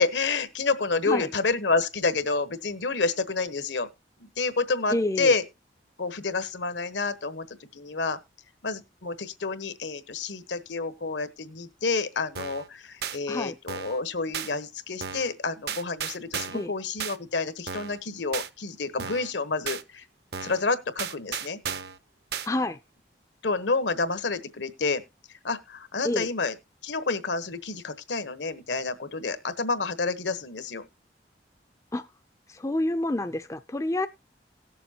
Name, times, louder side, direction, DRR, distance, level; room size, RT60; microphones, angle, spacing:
voice 1, 0.0-3.9 4.2-5.4 6.0-8.2 8.6-20.1 20.4-21.6 23.4-25.0 25.4-26.5 26.8-30.9, left 3 dB, 75° left, 1.1 m, -29 dB
voice 2, 4.9-5.3 13.3-13.6 16.5-16.7 22.5-22.8 26.0-26.3 31.9-32.1 32.5-34.1, left 1 dB, 15° left, 0.4 m, -28 dB
sound 1, 12.4-12.7 13.0-13.2 13.7-14.0 14.3-14.5 15.0-15.3 15.7-16.7 17.0-17.2 17.7-18.0 18.3-18.5 19.0-19.3 19.7-19.8 20.3-20.6 21.0-22.0 22.3-22.5, right 7 dB, 60° right, 0.8 m, -34 dB
18.0 x 7.0 x 2.9 m
head